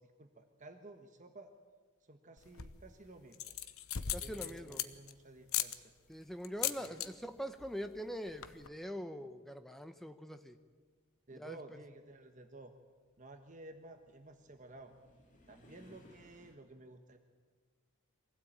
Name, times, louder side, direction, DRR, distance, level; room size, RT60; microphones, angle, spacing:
voice 1, 0.2-1.5 2.1-3.5 4.0-5.7 6.6-7.0 11.3-12.7 13.2-14.9 15.5-17.2, right 2 dB, 35° right, 5 dB, 1.3 m, -54 dB
sound 1, 2.4-2.9 3.3-5.1 5.5-5.8 6.4-7.1 7.4-7.7 7.9-8.0 8.3-8.7, left 11 dB, 70° left, 1.0 m, -37 dB
voice 2, 4.1-4.8 6.1-10.6 11.3-11.6, equal, ahead, 8 dB, 1.0 m, -43 dB
sound 2, 10.6-16.5, left 1 dB, 35° left, 3.0 m, -65 dB
23.5 x 16.0 x 8.8 m, 1.5 s
head